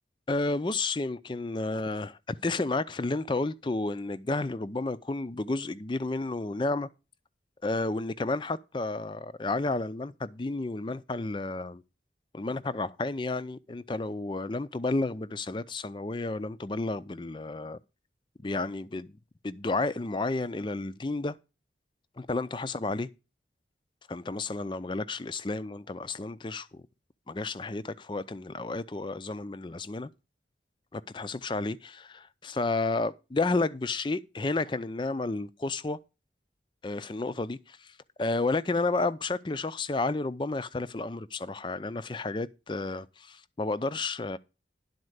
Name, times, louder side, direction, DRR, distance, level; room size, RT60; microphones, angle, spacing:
voice 1, 0.3-6.9 7.6-11.8 12.3-17.8 18.4-19.1 19.4-21.4 22.2-23.1 24.1-26.8 27.3-30.1 30.9-36.0 36.8-37.8 38.2-44.4, left 2 dB, 25° left, 0.4 m, -31 dB
11.0 x 4.3 x 8.0 m
head